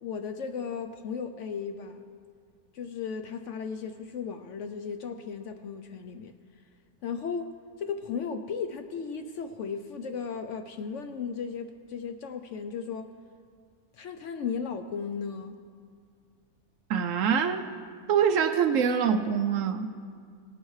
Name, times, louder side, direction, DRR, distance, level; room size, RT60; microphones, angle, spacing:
voice 1, 0.0-2.0 2.7-6.3 7.0-13.1 13.9-15.6, left 6 dB, 65° left, 0.8 m, -35 dB
voice 2, 16.9-17.7 18.1-20.0, right 7 dB, 70° right, 0.8 m, -25 dB
18.5 x 11.0 x 3.2 m
omnidirectional pair, 1.6 m